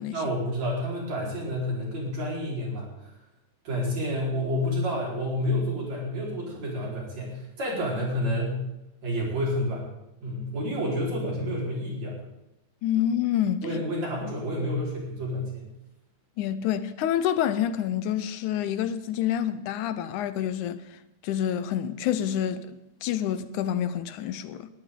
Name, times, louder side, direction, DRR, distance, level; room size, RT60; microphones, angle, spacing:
voice 1, 0.1-3.1 3.6-8.6 9.0-9.9 10.2-12.2 13.6-15.7, equal, 60° right, 5.8 m, -29 dB
voice 2, 12.8-13.7 16.4-20.8 21.2-24.7, left 10 dB, 85° left, 2.2 m, -27 dB
21.5 x 13.5 x 3.8 m
omnidirectional pair, 3.5 m